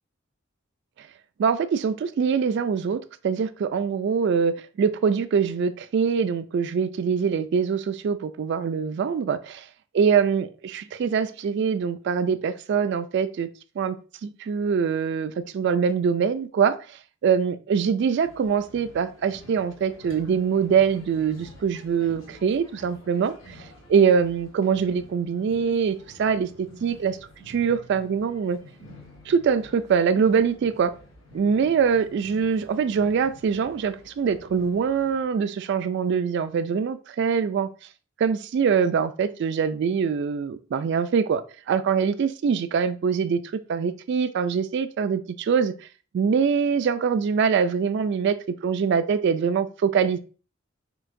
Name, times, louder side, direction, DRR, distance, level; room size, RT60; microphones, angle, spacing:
voice 1, 1.4-9.6 9.9-13.5 13.8-14.0 14.2-26.5 26.8-27.2 27.5-28.6 29.3-30.9 31.3-37.7 38.2-43.4 43.7-45.7 46.1-50.2, right 6 dB, 60° right, 12 dB, 0.3 m, -23 dB
sound 1, 18.2-35.2, equal, 70° left, 1.4 m, -49 dB
4.6 x 4.2 x 2.5 m, 0.37 s
head